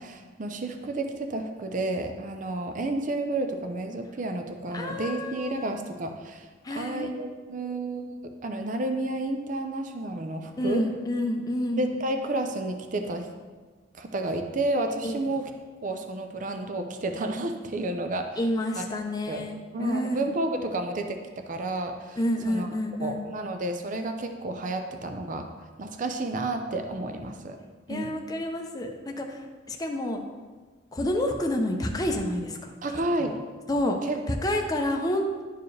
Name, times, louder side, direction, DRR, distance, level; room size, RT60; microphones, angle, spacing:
voice 1, 0.0-10.8 11.8-13.3 13.9-15.5 15.8-18.3 18.7-18.8 19.3-19.4 19.7-22.2 22.5-22.7 23.0-25.5 25.8-27.6 27.9-28.1 32.8-33.4 34.1-34.2, right 2 dB, 40° right, 6 dB, 0.5 m, -31 dB
voice 2, 4.7-5.7 6.6-7.1 10.6-11.9 15.0-15.2 18.4-20.3 22.2-23.2 27.9-30.2 30.9-32.7 33.2-33.4 33.7-34.0 34.3-35.4, left 1 dB, 20° left, 2 dB, 0.6 m, -29 dB
10.5 x 4.7 x 3.2 m, 1.4 s
head